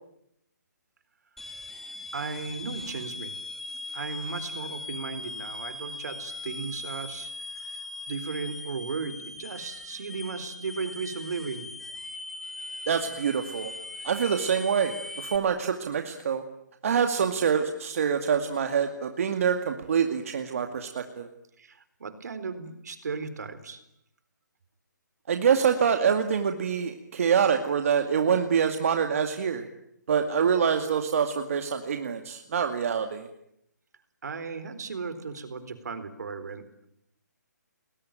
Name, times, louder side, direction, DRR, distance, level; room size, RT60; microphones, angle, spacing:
sound 1, 1.4-15.4, left 2 dB, 5° left, 1.4 m, -40 dB
voice 1, 2.1-3.4 3.9-7.3 7.6-7.8 8.1-11.7 21.6-23.8 34.2-36.9, right 4 dB, 65° right, 12 dB, 4.1 m, -36 dB
voice 2, 12.9-13.7 14.0-16.4 16.8-21.3 25.3-29.7 30.1-33.3, right 7 dB, 50° right, 6 dB, 2.2 m, -25 dB
29.5 x 21.0 x 9.0 m, 0.77 s
hypercardioid pair, 160°, 10 cm